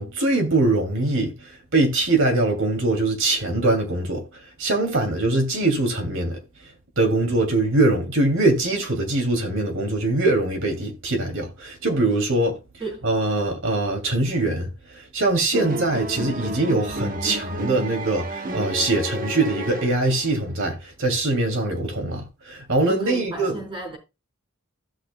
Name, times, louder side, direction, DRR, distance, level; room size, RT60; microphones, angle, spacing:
voice 1, 0.0-6.4 7.0-12.6 13.0-23.6, right 2 dB, 60° right, 2.8 m, -23 dB
voice 2, 15.5-15.9 22.9-24.0, right 2 dB, 25° right, 3.9 m, -32 dB
sound 1, 15.5-20.4, right 1 dB, 40° right, 1.1 m, -31 dB
16.0 x 6.7 x 2.3 m
head